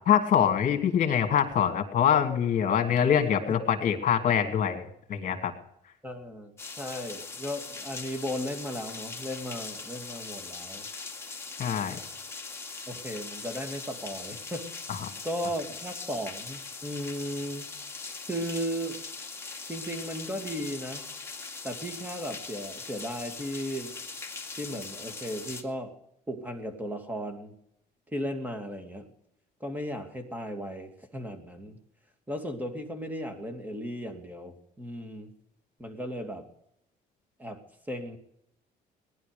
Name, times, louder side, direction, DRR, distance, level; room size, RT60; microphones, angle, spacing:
voice 1, 0.0-5.5 11.6-12.0 14.9-15.0, left 8 dB, 50° left, 5 dB, 2.8 m, -24 dB
voice 2, 6.0-10.9 12.9-14.7 15.2-17.7 18.3-19.0 19.7-21.0 21.6-23.9 24.6-25.9 26.3-27.5 28.1-29.1 29.6-31.8 32.3-35.3 35.8-36.5 37.4-37.6 37.9-38.2, equal, 10° right, 4 dB, 2.6 m, -36 dB
sound 1, 6.6-25.6, left 4 dB, 15° left, 2.3 m, -41 dB
19.5 x 11.0 x 5.3 m, 0.75 s
cardioid pair, 110°, 17 cm